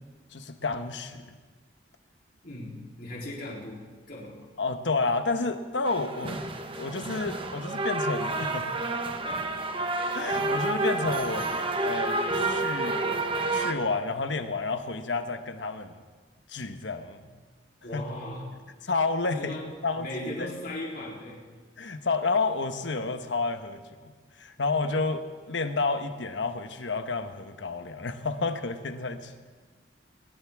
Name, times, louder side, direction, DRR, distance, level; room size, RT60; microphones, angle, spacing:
voice 1, 0.3-1.2 4.6-6.4 6.8-8.7 10.1-11.5 11.8-13.0 13.5-15.9 16.5-17.3 17.9-18.0 18.9-19.5 19.8-20.5 21.8-24.1 24.4-29.3, left 3 dB, 90° left, 8 dB, 1.2 m, -30 dB
voice 2, 2.4-3.8 4.1-4.4 17.8-18.5 19.3-19.6 19.9-21.4, left 1 dB, 55° left, -4 dB, 3.7 m, -37 dB
sound 1, 5.8-13.7, right 2 dB, 30° right, 1.2 m, -29 dB
20.5 x 19.5 x 3.6 m, 1.4 s
head